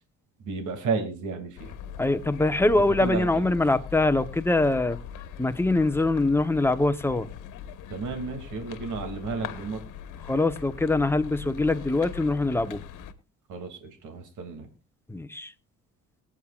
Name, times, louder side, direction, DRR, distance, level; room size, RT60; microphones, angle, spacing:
voice 1, 0.4-1.7 3.0-3.3 7.9-9.8 13.5-14.7, right 4 dB, 80° right, 2.7 m, -32 dB
sound 1, 1.6-13.1, left 8 dB, 90° left, 1.3 m, -40 dB
voice 2, 2.0-5.0 5.4-7.3 10.2-12.8 15.1-15.5, left 2 dB, 10° left, 1.0 m, -23 dB
23.0 x 8.9 x 2.5 m
cardioid pair, 90°, 30 cm